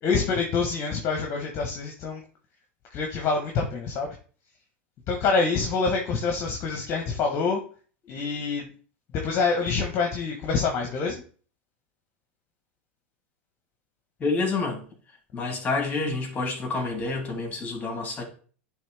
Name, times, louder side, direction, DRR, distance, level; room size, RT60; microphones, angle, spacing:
voice 1, 0.0-2.2 2.9-4.1 5.1-7.6 8.1-8.6 9.1-11.2, left 4 dB, 40° left, 1.3 m, -26 dB
voice 2, 14.2-14.8 15.3-18.2, left 3 dB, 25° left, 3.1 m, -28 dB
10.0 x 3.5 x 3.4 m
hypercardioid pair, 100°, 7 cm